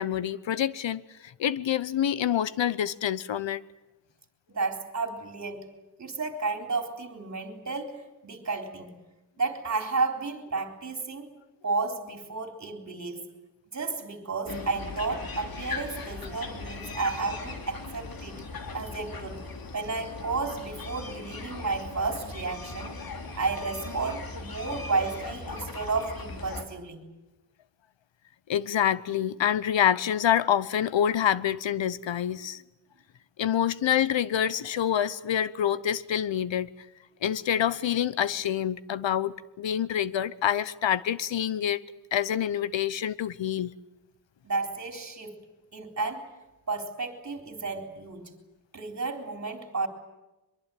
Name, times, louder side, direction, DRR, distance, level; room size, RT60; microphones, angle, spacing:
voice 1, 0.0-3.6 28.5-32.6 33.4-36.7 37.2-41.8 42.1-43.7, left 10 dB, 80° left, 1.0 m, -27 dB
voice 2, 4.5-5.7 6.0-9.0 9.4-11.3 11.6-13.3 13.7-18.4 18.7-19.5 19.7-23.0 23.3-27.1 44.4-45.4 45.7-46.3 46.7-48.3 48.7-49.9, right 3 dB, 40° right, 3.9 m, -32 dB
sound 1, 14.5-26.6, left 3 dB, 50° left, 2.9 m, -39 dB
23.5 x 23.0 x 9.2 m
wide cardioid pair, 155°, 44 cm